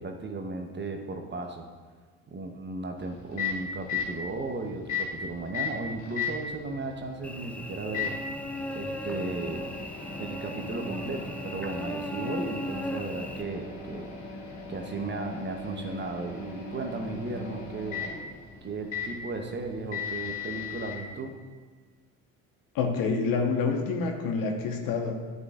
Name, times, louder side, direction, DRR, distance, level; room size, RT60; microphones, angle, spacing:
voice 1, 0.0-1.7 2.3-8.2 8.7-9.7 10.2-14.1 14.7-18.0 18.6-21.3, right 3 dB, 30° right, 4 dB, 0.9 m, -35 dB
Microwave oven, 3.0-21.0, left 5 dB, 45° left, 2.0 m, -37 dB
Cricket / Buzz, 7.2-13.4, left 1 dB, 5° left, 0.4 m, -37 dB
voice 2, 22.7-25.1, left 4 dB, 65° left, 3 dB, 1.1 m, -27 dB
9.4 x 5.1 x 2.4 m, 1.5 s
hypercardioid pair, 65°, 38 cm